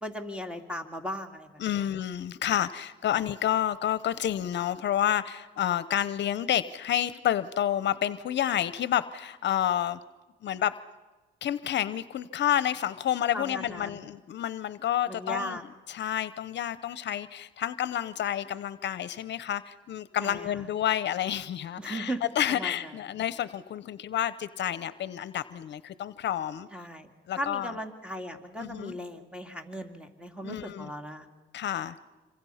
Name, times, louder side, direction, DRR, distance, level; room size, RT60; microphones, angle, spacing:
voice 1, 0.0-1.9 3.1-3.3 13.3-14.1 15.1-15.6 20.2-20.6 21.8-22.2 22.5-22.9 26.7-31.3, equal, 5° right, 4 dB, 2.4 m, -37 dB
voice 2, 1.6-10.0 10.4-10.7 11.4-15.6 15.9-26.7 27.3-27.7 28.6-28.9 30.4-30.9 31.5-32.0, left 11 dB, 65° left, 15 dB, 0.8 m, -29 dB
27.0 x 24.5 x 5.7 m, 1.2 s
cardioid pair, 90°, 20 cm